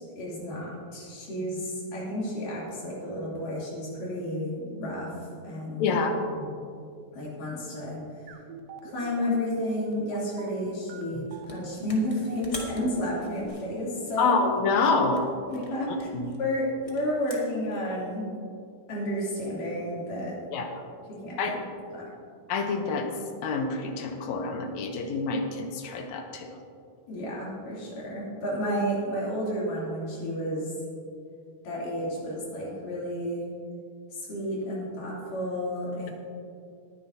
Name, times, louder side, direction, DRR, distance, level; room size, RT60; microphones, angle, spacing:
voice 1, 0.1-5.9 6.4-6.5 7.1-8.0 8.8-14.3 15.5-16.1 16.4-18.3 18.9-20.3 21.2-21.6 21.9-22.0 27.1-30.7 31.6-33.5 34.1-36.1, equal, 85° left, -6 dB, 4.8 m, -31 dB
voice 2, 5.8-6.2 14.2-15.3 16.1-16.3 20.5-20.8 21.4-21.6 22.5-23.1 23.4-26.5, left 4 dB, 70° left, 5 dB, 2.0 m, -27 dB
sound 1, 8.3-13.5, right 6 dB, 75° right, 1.4 m, -43 dB
sound 2, 11.3-11.6 11.9-14.7 15.1-17.8, left 1 dB, 45° left, 0.4 m, -45 dB
19.5 x 10.0 x 2.8 m, 2.4 s
omnidirectional pair, 3.7 m